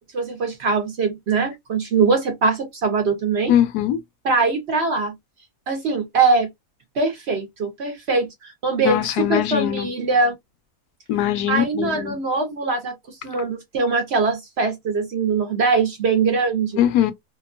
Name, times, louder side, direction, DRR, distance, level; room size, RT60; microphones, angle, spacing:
voice 1, 0.1-3.5 4.2-5.1 5.7-6.5 7.0-10.4 11.5-16.8, right 4 dB, 55° right, 0.8 m, -22 dB
voice 2, 3.5-4.0 8.8-9.9 11.1-12.2 16.8-17.1, left 11 dB, 85° left, 1.1 m, -21 dB
2.9 x 2.2 x 2.4 m
omnidirectional pair, 1.6 m